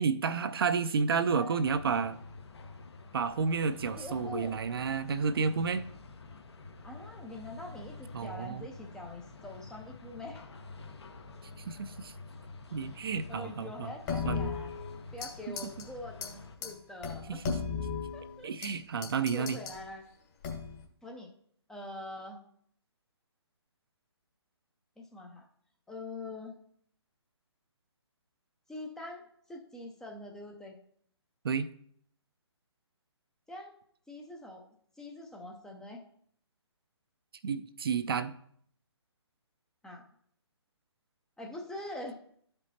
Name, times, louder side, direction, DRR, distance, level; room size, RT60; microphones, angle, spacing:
voice 1, 0.0-2.2 3.1-5.8 8.1-8.7 11.7-12.1 12.7-13.9 14.2-14.5 15.5-15.6 17.3-17.5 18.4-19.6 31.4-31.7 37.4-38.3, right 5 dB, 55° right, 11 dB, 0.5 m, -31 dB
voice 2, 1.1-2.2 4.0-4.6 6.8-10.4 13.3-14.7 15.1-17.4 18.1-18.5 19.3-20.1 21.0-21.3 21.7-22.4 25.0-25.4 25.9-26.6 28.7-30.8 33.5-33.8 34.1-34.6 35.0-36.0 39.8-40.1 41.4-42.2, left 2 dB, 5° left, 0 dB, 0.5 m, -44 dB
sound 1, 1.6-16.6, left 3 dB, 65° left, 1.1 m, -48 dB
sound 2, 14.1-15.3 15.6-15.8 16.2-16.3 16.6-16.7 17.0-18.7 19.0-19.8 20.4-20.8, left 6 dB, 35° left, 1.4 m, -35 dB
12.5 x 5.3 x 2.8 m, 0.65 s
figure-of-eight pair, 145°, 15 cm